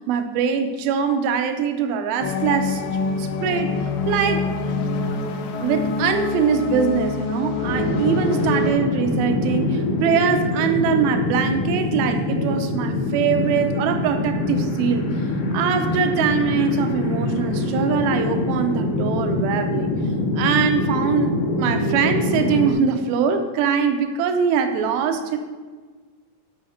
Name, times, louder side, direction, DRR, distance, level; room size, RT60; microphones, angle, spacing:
voice 1, 0.1-2.8 3.2-3.7 4.1-4.4 5.6-15.1 15.5-19.9 20.3-25.4, right 6 dB, 85° right, 7 dB, 2.6 m, -22 dB
sound 1, 2.2-8.8, left 3 dB, 85° left, 2.7 m, -26 dB
sound 2, 7.6-22.7, left 2 dB, 65° left, 2.2 m, -24 dB
7.8 x 5.5 x 6.3 m, 1.4 s
omnidirectional pair, 4.4 m